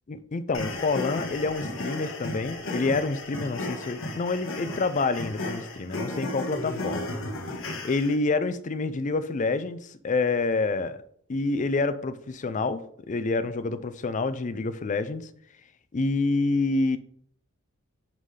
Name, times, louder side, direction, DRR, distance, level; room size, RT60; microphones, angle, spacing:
voice 1, 0.1-7.1 7.8-11.0 11.3-12.8 13.1-15.3 15.9-17.0, left 3 dB, 35° left, 12 dB, 0.4 m, -27 dB
sound 1, 0.5-8.1, left 2 dB, 70° left, 1.4 m, -34 dB
10.5 x 3.8 x 3.3 m, 0.64 s
head